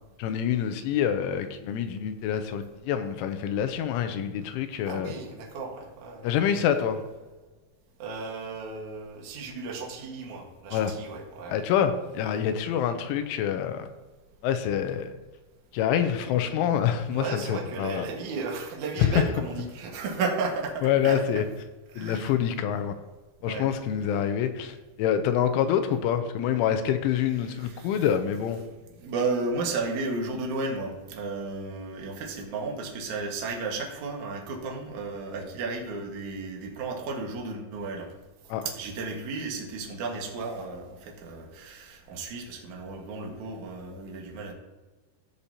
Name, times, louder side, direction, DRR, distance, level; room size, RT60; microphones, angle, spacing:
voice 1, 0.2-5.1 6.2-7.0 10.7-10.9 11.5-13.9 14.4-15.1 15.7-18.0 20.8-21.4 22.0-22.9 23.4-28.6 38.5-38.6, left 9 dB, 85° left, 8 dB, 3.0 m, -26 dB
voice 2, 4.8-6.3 8.0-11.6 17.1-21.2 21.9-22.3 23.4-23.7 24.1-24.2 27.4-28.1 28.9-38.1 38.7-44.5, right 3 dB, 65° right, 0 dB, 1.9 m, -34 dB
17.0 x 6.8 x 2.9 m, 1.2 s
omnidirectional pair, 5.8 m